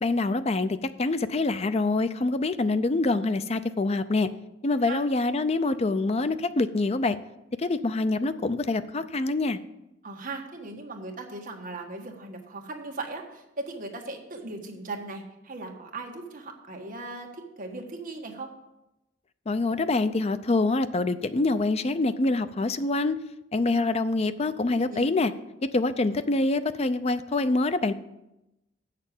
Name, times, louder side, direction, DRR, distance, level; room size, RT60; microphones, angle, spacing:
voice 1, 0.0-4.3 4.6-7.2 7.6-9.6 19.5-23.2 23.5-25.3 25.6-27.9, left 2 dB, 35° left, 12 dB, 0.5 m, -25 dB
voice 2, 10.0-18.5 24.9-25.1, right 2 dB, 45° right, 2 dB, 1.4 m, -38 dB
8.1 x 6.6 x 7.2 m, 0.91 s
head